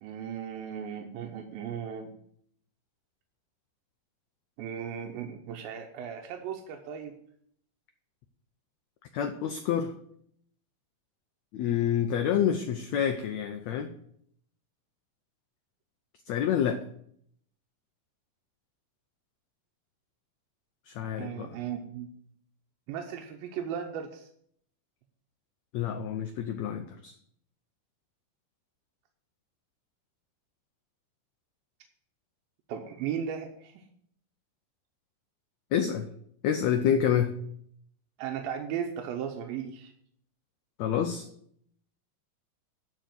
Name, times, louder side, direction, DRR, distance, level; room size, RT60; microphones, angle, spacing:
voice 1, 0.0-2.1 4.6-7.2 21.2-22.1 22.9-24.3 32.7-33.9 38.2-39.9, right 8 dB, 90° right, 3 dB, 2.6 m, -36 dB
voice 2, 9.1-9.9 11.5-13.9 16.3-16.8 20.9-21.5 25.7-27.1 35.7-36.1 36.4-37.3 40.8-41.3, left 9 dB, 90° left, 6 dB, 1.5 m, -28 dB
10.5 x 4.7 x 7.6 m, 0.67 s
omnidirectional pair, 4.1 m